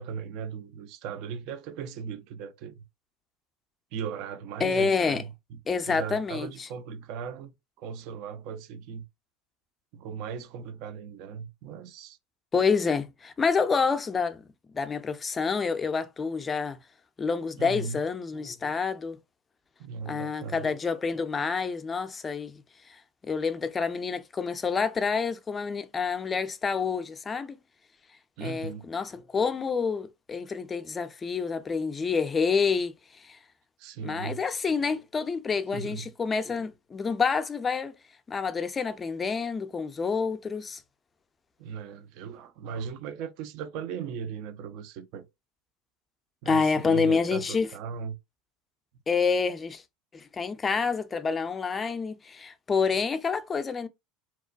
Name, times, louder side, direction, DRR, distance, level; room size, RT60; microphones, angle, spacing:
voice 1, 0.0-2.8 3.9-5.6 5.8-9.0 9.9-12.2 17.6-18.0 19.8-20.7 28.4-28.9 33.8-34.4 35.7-36.1 41.6-45.3 46.4-48.1, right 7 dB, 60° right, 0.4 m, -38 dB
voice 2, 4.6-5.2 5.7-6.7 12.5-14.4 14.7-16.8 17.2-19.2 20.1-22.6 22.9-27.6 28.4-33.4 34.0-37.9 38.3-40.8 46.5-47.7 49.1-49.8 50.1-53.9, left 5 dB, 25° left, 0.4 m, -28 dB
2.9 x 2.2 x 2.4 m
hypercardioid pair, 75°, 0 cm